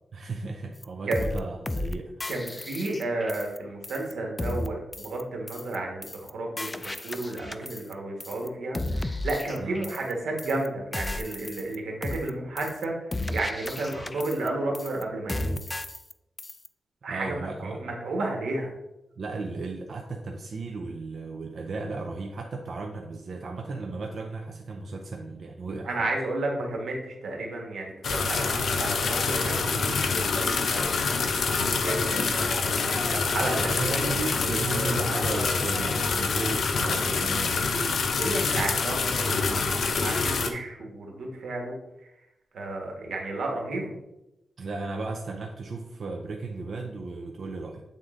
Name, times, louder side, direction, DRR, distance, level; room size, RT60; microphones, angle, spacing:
voice 1, 0.1-2.3 9.6-9.8 17.1-18.0 19.2-26.1 33.5-38.1 44.6-47.8, right 3 dB, 55° right, 2 dB, 0.5 m, -35 dB
sound 1, 0.8-0.9 1.1-1.4 1.7-1.9 2.2-3.6 3.8-4.1 4.4-4.7 4.9-5.2 5.5-5.8 6.0-6.3 6.6-7.9 8.2-8.5 8.7-10.1 10.4-10.7 10.9-11.8 12.0-12.3 12.6-12.8 13.1-14.5 14.7-15.0 15.3-16.1 16.4-16.7, left 1 dB, 20° left, 0.3 m, -34 dB
voice 2, 2.3-15.5 17.0-18.7 25.8-30.9 31.5-33.9 36.8-37.0 37.9-41.7 42.5-43.9, right 2 dB, 85° right, 1 dB, 1.4 m, -32 dB
sound 2, 28.0-40.5, left 4 dB, 70° left, 0.6 m, -26 dB
7.8 x 3.7 x 3.7 m, 0.92 s
wide cardioid pair, 125°, 0 cm